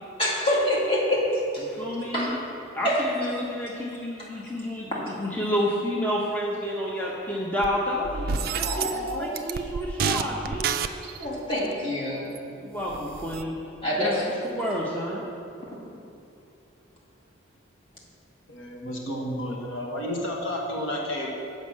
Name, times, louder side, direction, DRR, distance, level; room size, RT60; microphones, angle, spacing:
voice 1, 0.2-1.7 2.1-2.3 2.8-3.1 8.6-9.3 11.2-12.3 13.8-14.3, left 1 dB, 25° left, -6 dB, 1.9 m, -26 dB
voice 2, 1.7-2.4 2.7-10.7 12.6-13.6 14.0-15.2, equal, 10° left, -4 dB, 0.7 m, -30 dB
sound 1, 7.6-7.7 8.0-9.1 9.4-11.2 12.4-12.5 12.8-13.4, right 6 dB, 45° right, 0.3 m, -29 dB
voice 3, 18.5-21.3, equal, 70° left, -1 dB, 1.2 m, -31 dB
7.7 x 5.4 x 7.3 m, 2.6 s
head